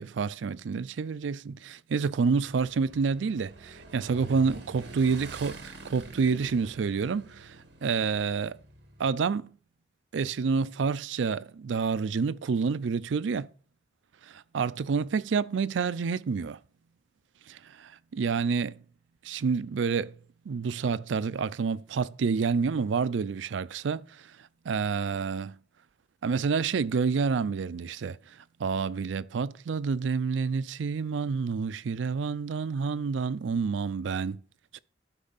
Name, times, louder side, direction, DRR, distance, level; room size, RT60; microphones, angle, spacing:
voice 1, 0.0-7.6 7.8-8.6 9.0-9.5 10.1-13.5 14.5-16.6 17.5-18.8 19.2-20.1 20.5-24.0 24.7-25.6 26.2-28.2 28.6-34.4 34.7-34.8, right 5 dB, 85° right, 0.4 m, -28 dB
Motorcycle / Engine, 2.1-9.1, right 3 dB, 65° right, 1.7 m, -47 dB
12.0 x 5.3 x 4.0 m
head